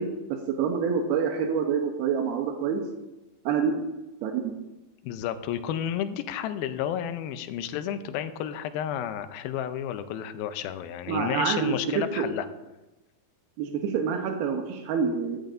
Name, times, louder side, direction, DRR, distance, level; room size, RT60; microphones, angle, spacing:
voice 1, 0.0-2.8 3.5-3.8 4.2-4.5 11.1-11.7 12.2-12.3 13.6-15.4, right 6 dB, 90° right, 3 dB, 2.9 m, -27 dB
voice 2, 5.0-12.5, left 10 dB, 80° left, 10 dB, 2.4 m, -31 dB
14.0 x 13.5 x 2.6 m, 1.0 s
omnidirectional pair, 4.5 m